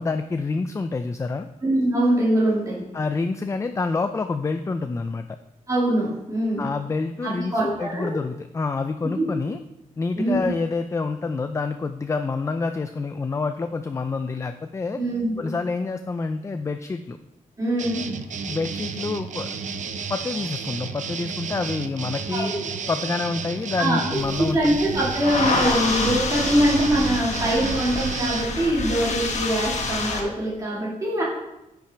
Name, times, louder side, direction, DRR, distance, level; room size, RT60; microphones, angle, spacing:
voice 1, 0.0-1.5 2.9-5.3 6.6-9.6 10.0-15.0 15.4-17.2 18.5-19.6 20.1-22.5 22.9-24.8, left 4 dB, 20° left, 8 dB, 0.3 m, -27 dB
voice 2, 1.6-2.8 5.7-6.7 7.2-8.1 9.1-9.2 10.1-10.5 15.0-15.5 17.6-18.0 22.3-22.7 23.8-24.0 24.4-31.2, right 1 dB, 20° right, -6 dB, 2.7 m, -23 dB
sound 1, 17.8-28.5, right 6 dB, 55° right, 0.6 m, -32 dB
sound 2, 24.1-30.2, left 3 dB, 50° left, 1.3 m, -28 dB
9.8 x 5.8 x 4.5 m, 0.90 s
wide cardioid pair, 170°, 15 cm